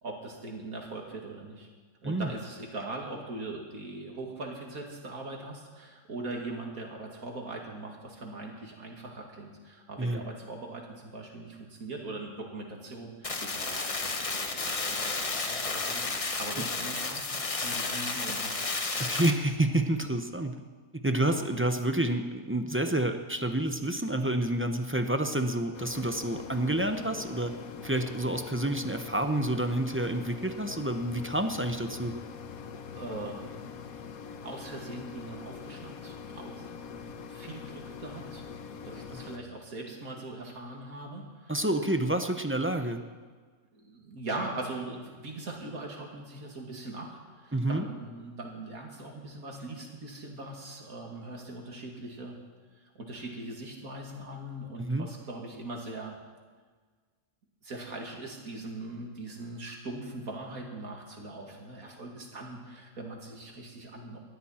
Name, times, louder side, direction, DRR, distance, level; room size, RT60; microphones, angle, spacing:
voice 1, 0.0-1.7 2.0-18.5 32.9-33.9 34.2-38.4 38.8-41.7 43.7-52.4 52.9-56.2 57.6-64.2, right 2 dB, 85° right, 0 dB, 2.8 m, -41 dB
sound 1, 13.2-19.3, left 3 dB, 30° left, 0.9 m, -32 dB
voice 2, 19.0-20.6 20.9-27.5 27.8-32.1 41.5-43.0 47.5-47.8 54.8-55.1, right 1 dB, 10° right, 6 dB, 0.6 m, -29 dB
sound 2, 25.7-39.4, left 6 dB, 85° left, 1.4 m, -43 dB
19.5 x 13.0 x 4.4 m, 1.5 s
omnidirectional pair, 1.5 m